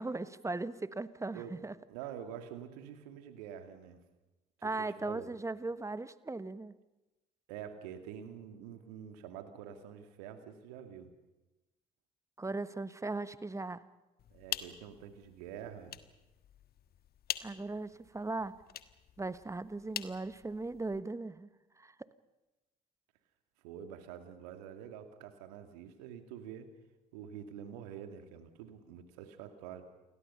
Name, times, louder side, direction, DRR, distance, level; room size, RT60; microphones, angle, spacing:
voice 1, 0.0-1.7 4.6-6.7 12.4-13.8 17.4-18.5 19.2-21.5 21.8-22.1, right 3 dB, 15° right, 15 dB, 1.2 m, -38 dB
voice 2, 1.9-4.0 4.6-5.3 7.5-11.1 14.3-16.0 23.6-26.7 27.1-29.9, right 9 dB, 70° right, 7 dB, 2.4 m, -47 dB
sound 1, 14.2-21.0, left 10 dB, 50° left, 1.4 m, -45 dB
29.0 x 22.5 x 5.7 m, 1.1 s
figure-of-eight pair, 50°, 21 cm